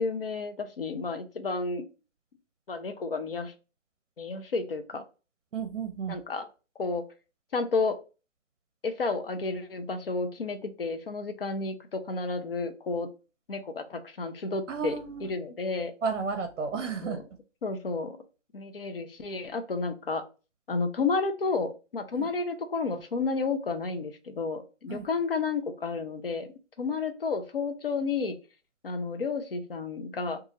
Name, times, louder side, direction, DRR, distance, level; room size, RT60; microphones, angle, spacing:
voice 1, 0.0-1.9 2.7-3.5 4.2-5.0 6.1-6.5 6.8-7.0 7.5-8.0 8.8-13.1 13.5-14.9 15.2-15.9 17.0-17.2 17.6-18.2 18.5-20.2 20.7-26.5 26.8-28.3 28.8-30.4, left 4 dB, 50° left, 0.5 m, -31 dB
voice 2, 5.5-6.2 14.7-15.3 16.0-17.2 22.1-22.3 24.9-25.1, right 5 dB, 75° right, 0.6 m, -32 dB
2.7 x 2.3 x 2.9 m
hypercardioid pair, 170°, 37 cm